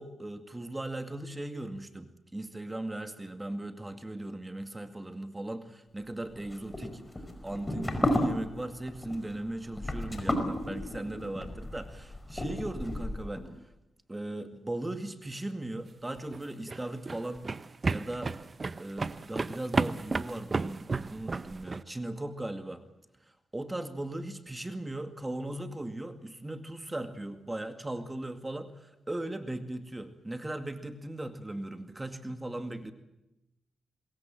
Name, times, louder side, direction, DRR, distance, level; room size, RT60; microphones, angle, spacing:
voice 1, 0.0-7.0 7.4-13.5 14.1-17.4 17.9-18.3 18.8-22.8 23.5-32.9, right 1 dB, 15° right, 7 dB, 2.2 m, -38 dB
sound 1, 6.4-13.4, left 1 dB, 15° left, 5.0 m, -33 dB
sound 2, 16.2-21.8, right 4 dB, 35° right, 0.8 m, -33 dB
26.0 x 22.0 x 7.7 m, 0.93 s
cardioid pair, 80°, 0 cm